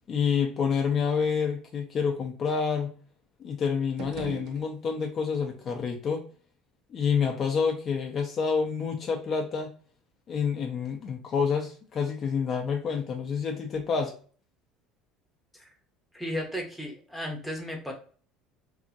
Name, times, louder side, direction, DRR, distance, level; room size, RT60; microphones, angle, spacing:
voice 1, 0.1-2.9 3.4-6.2 6.9-9.7 10.3-14.1, left 6 dB, 35° left, 3 dB, 0.6 m, -28 dB
sound 1, 3.8-5.2, right 6 dB, 60° right, 0.5 m, -42 dB
voice 2, 16.1-17.9, equal, ahead, 0 dB, 0.7 m, -34 dB
2.8 x 2.5 x 2.4 m, 0.43 s
cardioid pair, 135°, 0 cm